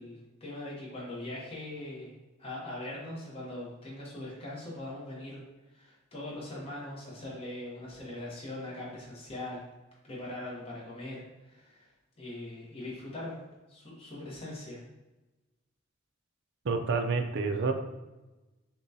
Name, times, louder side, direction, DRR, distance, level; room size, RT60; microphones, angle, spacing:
voice 1, 0.0-2.1 2.4-5.4 5.7-9.7 10.0-11.9 12.2-13.4 13.7-14.8, left 1 dB, 25° left, -5 dB, 0.9 m, -41 dB
voice 2, 16.6-17.7, right 4 dB, 50° right, 6 dB, 0.4 m, -28 dB
6.8 x 2.3 x 2.7 m, 1.1 s
head